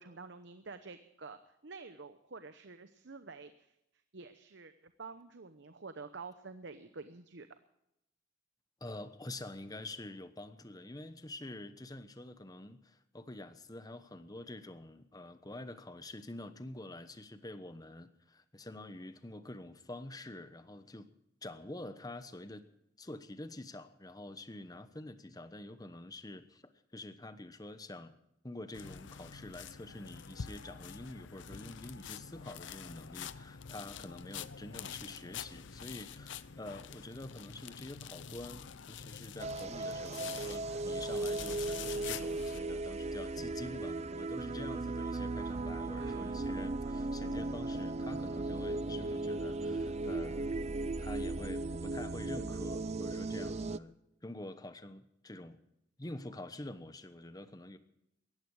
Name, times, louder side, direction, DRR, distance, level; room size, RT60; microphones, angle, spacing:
voice 1, 0.0-1.4 1.6-3.7 4.1-7.5 45.9-46.5, right 4 dB, 65° right, 10 dB, 0.9 m, -49 dB
voice 2, 8.8-21.1 21.4-22.6 23.0-28.1 28.4-54.0 54.2-55.6 56.0-57.8, left 1 dB, 20° left, 11 dB, 1.1 m, -47 dB
sound 1, 28.7-42.6, left 7 dB, 65° left, 0.6 m, -46 dB
sound 2, 39.4-53.8, right 2 dB, 35° right, 0.5 m, -37 dB
sound 3, 45.5-50.4, left 5 dB, 85° right, 4.8 m, -59 dB
18.5 x 14.5 x 4.7 m, 0.84 s
head